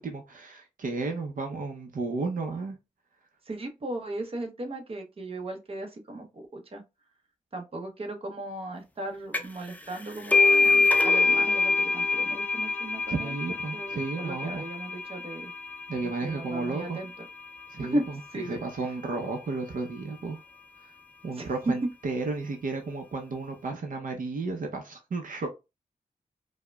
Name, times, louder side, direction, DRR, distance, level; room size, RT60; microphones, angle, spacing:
voice 1, 0.0-2.7 13.1-14.7 15.9-17.0 17.7-20.4 21.2-25.5, right 3 dB, 75° right, 0.6 m, -33 dB
voice 2, 3.5-6.8 7.5-13.3 13.7-15.5 16.0-17.1 17.8-18.0 18.3-18.6 21.4-21.7, right 1 dB, 45° right, 0.8 m, -36 dB
sound 1, 9.3-9.7 9.9-17.2, left 3 dB, 10° left, 0.4 m, -25 dB
4.7 x 2.1 x 2.2 m
wide cardioid pair, 125°, 14 cm